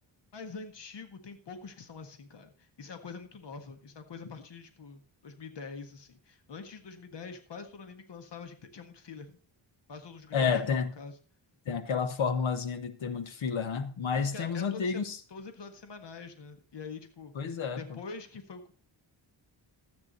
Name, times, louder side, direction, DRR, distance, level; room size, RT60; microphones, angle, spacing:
voice 1, 0.3-9.4 9.9-11.1 14.1-17.3 17.8-18.7, left 4 dB, 65° left, 1.7 m, -45 dB
voice 2, 10.3-10.9 11.7-15.2 17.3-18.0, left 6 dB, 90° left, 1.5 m, -30 dB
13.5 x 8.8 x 4.1 m
cardioid pair, 90°, 46 cm